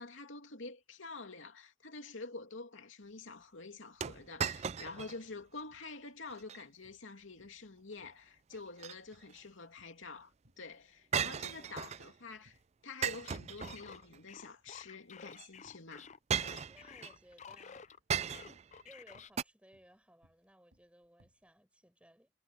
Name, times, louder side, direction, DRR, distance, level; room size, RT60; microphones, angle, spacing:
voice 1, 0.0-10.3 10.6-12.6 12.8-16.1, left 3 dB, 85° left, 2.7 m, -48 dB
sound 1, 4.0-5.2 5.6-5.7 6.3-6.6 8.5-9.4 11.1-12.1 13.0-14.2 15.3-15.5 16.3-17.2 18.1-18.7 19.4-19.5, right 7 dB, 35° right, 0.4 m, -37 dB
sound 2, 5.6-5.9 6.3-7.1 7.4-7.7 8.0-10.8 11.1-12.1 12.5-12.9 13.2-13.4 13.8-14.4 14.7-16.0 16.5-17.0 17.5-17.9 18.3-21.5, equal, 65° right, 7.6 m, -70 dB
voice 2, 11.6-12.1 16.7-18.5 18.8-22.3, equal, 5° right, 6.4 m, -62 dB
sound 3, 13.2-18.0 18.3-19.3, left 6 dB, 35° left, 0.6 m, -52 dB
head